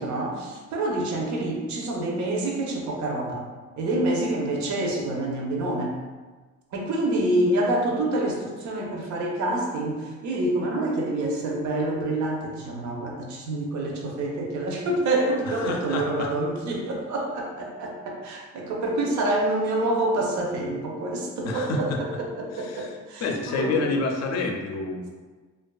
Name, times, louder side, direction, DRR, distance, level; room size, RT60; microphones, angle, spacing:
voice 1, 0.0-3.4 3.8-5.9 6.7-23.9, right 1 dB, 70° right, -1 dB, 0.6 m, -27 dB
voice 2, 15.5-16.3 21.4-22.0 22.5-22.9 23.2-25.1, left 3 dB, 60° left, 2 dB, 0.5 m, -28 dB
2.5 x 2.4 x 2.2 m, 1.4 s
cardioid pair, 90°, 30 cm